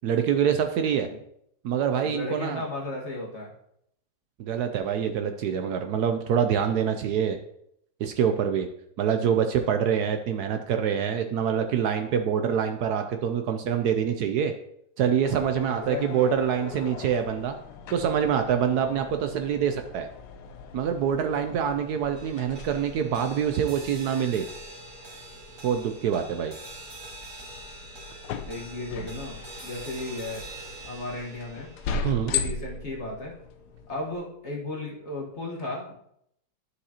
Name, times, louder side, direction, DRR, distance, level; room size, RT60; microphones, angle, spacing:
voice 1, 0.0-1.1 1.6-2.6 4.4-7.4 8.0-8.7 9.0-14.5 15.0-17.6 17.9-20.1 20.7-24.5 25.6-26.5 32.0-32.3, right 8 dB, 75° right, 6 dB, 1.0 m, -25 dB
voice 2, 2.0-3.5 15.7-16.3 18.7-19.0 28.5-30.4 30.8-31.7 32.2-33.3 33.9-36.0, left 2 dB, 40° left, -3 dB, 1.6 m, -35 dB
sound 1, 15.2-34.2, left 4 dB, 70° left, 1.1 m, -39 dB
sound 2, 22.1-34.6, right 2 dB, 45° right, 2.0 m, -45 dB
12.5 x 4.9 x 2.9 m, 0.73 s
omnidirectional pair, 1.9 m